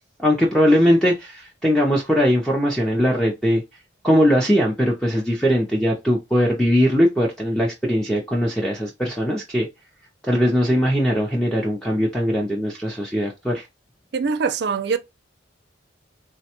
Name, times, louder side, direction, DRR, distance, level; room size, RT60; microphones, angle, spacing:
voice 1, 0.2-3.6 4.0-9.7 10.2-13.7, equal, 5° left, 0.4 m, -20 dB
voice 2, 14.1-15.0, right 5 dB, 55° right, 0.4 m, -23 dB
3.3 x 2.1 x 2.8 m
head